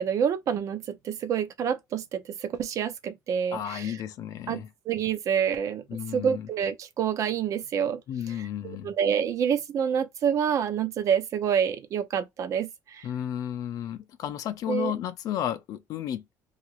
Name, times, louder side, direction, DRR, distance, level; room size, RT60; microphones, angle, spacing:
voice 1, 0.0-3.9 4.5-5.8 6.1-8.0 8.6-13.1 14.7-14.9, right 8 dB, 50° right, 0.5 m, -27 dB
voice 2, 3.5-4.7 5.9-6.5 8.1-8.9 13.0-16.2, left 10 dB, 60° left, 0.5 m, -33 dB
2.8 x 2.4 x 2.8 m
cardioid pair, 145°, 7 cm